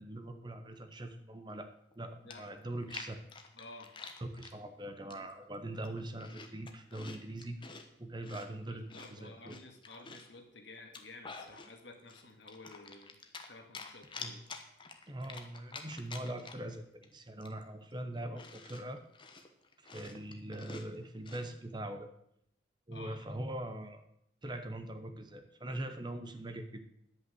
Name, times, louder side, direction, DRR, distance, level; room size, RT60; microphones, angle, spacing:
voice 1, 0.0-1.7 2.0-3.2 4.2-7.6 8.0-9.6 14.2-14.4 15.1-19.0 19.8-22.1 22.9-24.0 24.4-26.9, right 1 dB, 25° right, 7 dB, 0.8 m, -42 dB
Chewing mastication, 1.9-2.0 2.3-4.6 5.1-5.5 5.8-7.9 8.2-10.4 10.8-11.7 12.1-13.5 13.7-16.7 17.0-17.1 17.4-21.5, left 4 dB, 25° left, 1.0 m, -48 dB
voice 2, 2.2-2.5 3.6-3.9 8.7-13.1 13.5-14.4 22.9-23.3, left 2 dB, 65° left, 4 dB, 1.8 m, -52 dB
11.0 x 5.6 x 7.9 m, 0.75 s
head